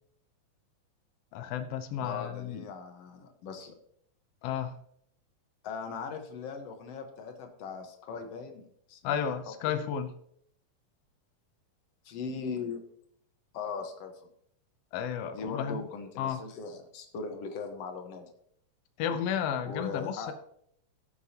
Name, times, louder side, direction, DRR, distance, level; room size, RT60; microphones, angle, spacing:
voice 1, 1.3-2.6 4.4-4.7 9.0-10.1 14.9-15.8 16.2-16.4 19.0-20.3, left 8 dB, 85° left, 8 dB, 1.4 m, -32 dB
voice 2, 2.0-3.8 5.6-9.4 9.7-9.8 12.0-12.8 13.5-14.1 15.3-18.3 19.7-20.3, left 5 dB, 60° left, 5 dB, 2.0 m, -39 dB
18.0 x 7.1 x 2.8 m, 0.68 s
omnidirectional pair, 3.7 m